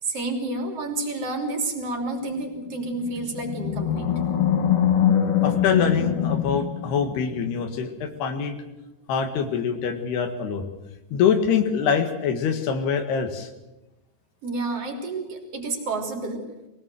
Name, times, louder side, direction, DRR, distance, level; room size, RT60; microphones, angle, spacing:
voice 1, 0.0-4.1 14.4-16.4, right 2 dB, 40° right, 4 dB, 3.9 m, -29 dB
Animal, 2.9-7.4, left 9 dB, 55° left, 1.7 m, -23 dB
voice 2, 5.4-8.5 9.1-10.6 11.1-13.5, left 7 dB, 80° left, 7 dB, 3.8 m, -24 dB
23.0 x 18.0 x 7.7 m, 1.0 s
omnidirectional pair, 4.6 m